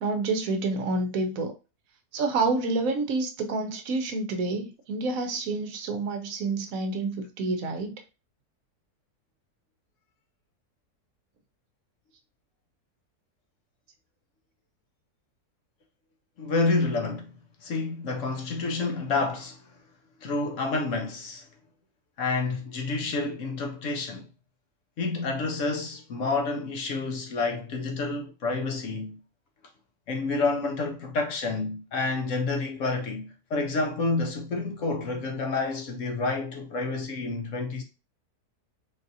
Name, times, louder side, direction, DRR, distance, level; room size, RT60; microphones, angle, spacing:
voice 1, 0.0-1.5 2.1-8.0, right 3 dB, 70° right, 1.0 m, -28 dB
voice 2, 16.4-17.3 17.6-19.6 20.2-21.5 22.2-24.3 25.0-29.2 30.1-37.8, left 3 dB, 65° left, 0.9 m, -29 dB
4.0 x 2.4 x 2.6 m
omnidirectional pair, 1.6 m